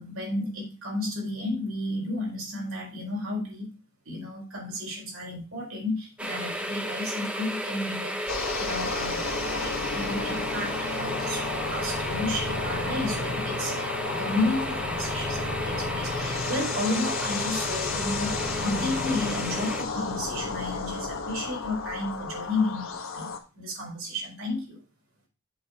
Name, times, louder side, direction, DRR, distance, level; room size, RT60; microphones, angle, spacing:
voice 1, 0.0-3.7 4.0-23.3 23.5-24.8, left 2 dB, 75° right, -1 dB, 4.4 m, -32 dB
sound 1, 6.2-19.8, equal, 5° right, 0.8 m, -34 dB
sound 2, 8.3-23.4, left 4 dB, 70° left, 1.4 m, -32 dB
7.8 x 4.7 x 5.4 m, 0.32 s
head